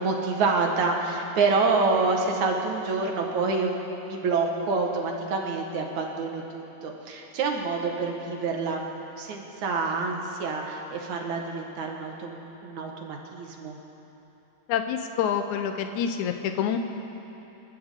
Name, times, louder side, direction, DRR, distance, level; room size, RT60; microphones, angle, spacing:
voice 1, 0.0-8.8 9.2-13.8, right 4 dB, 80° right, 1 dB, 2.9 m, -27 dB
voice 2, 14.7-16.8, left 8 dB, 85° left, 6 dB, 2.3 m, -27 dB
29.5 x 13.5 x 3.7 m, 3.0 s
omnidirectional pair, 3.4 m